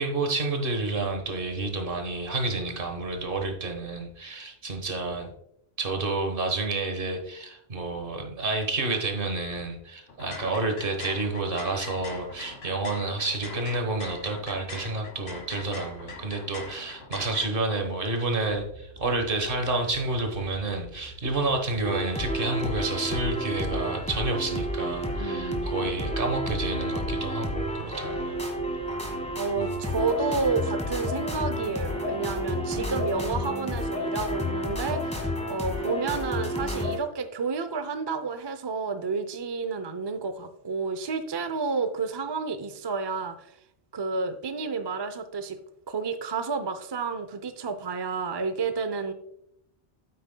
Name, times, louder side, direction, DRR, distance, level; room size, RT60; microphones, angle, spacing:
voice 1, 0.0-5.3 5.8-28.4 29.6-29.8, right 3 dB, 55° right, 4 dB, 1.4 m, -29 dB
sound 1, 10.1-17.5, left 3 dB, 70° left, 1.5 m, -42 dB
sound 2, 18.5-33.2, right 1 dB, 70° right, 2.7 m, -46 dB
sound 3, 21.8-37.0, equal, 5° left, 1.4 m, -31 dB
voice 2, 25.2-25.7 29.4-43.5 43.9-45.6 45.9-49.1, right 4 dB, 35° right, 9 dB, 0.4 m, -30 dB
9.1 x 8.4 x 2.2 m, 0.76 s
omnidirectional pair, 1.1 m